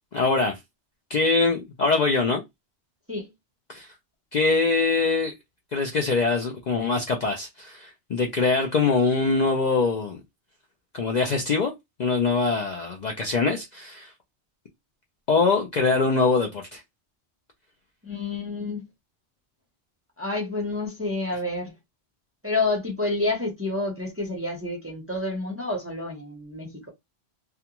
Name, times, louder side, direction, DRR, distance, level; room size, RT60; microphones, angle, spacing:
voice 1, 0.1-0.6 1.1-2.4 3.7-3.9 4.3-5.3 5.7-10.2 10.9-11.7 12.0-14.1 15.3-16.8, left 4 dB, 55° left, 0.5 m, -23 dB
voice 2, 18.0-18.8 20.2-21.7 22.4-26.9, left 2 dB, 15° right, 0.6 m, -29 dB
2.4 x 2.2 x 2.9 m
omnidirectional pair, 1.1 m